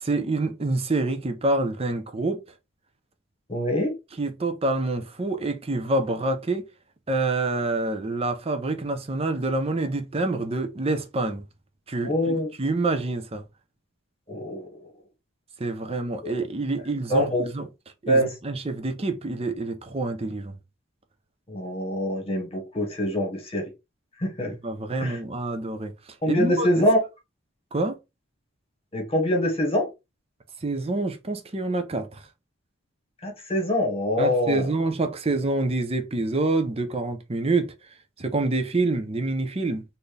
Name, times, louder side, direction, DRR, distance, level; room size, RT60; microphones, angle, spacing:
voice 1, 0.0-2.4 4.2-6.6 7.1-11.4 11.9-13.4 15.6-17.6 18.0-20.6 24.6-25.9 26.3-26.8 27.7-28.0 30.6-32.2 34.2-37.7 38.2-39.8, right 2 dB, 30° right, 0.7 m, -27 dB
voice 2, 3.5-4.0 12.0-12.5 14.3-14.8 16.2-16.3 17.1-17.4 18.1-18.3 21.5-23.7 24.2-24.5 25.0-25.2 26.2-27.0 28.9-29.9 33.2-34.7, equal, 30° left, 1.4 m, -24 dB
4.2 x 2.7 x 3.3 m
head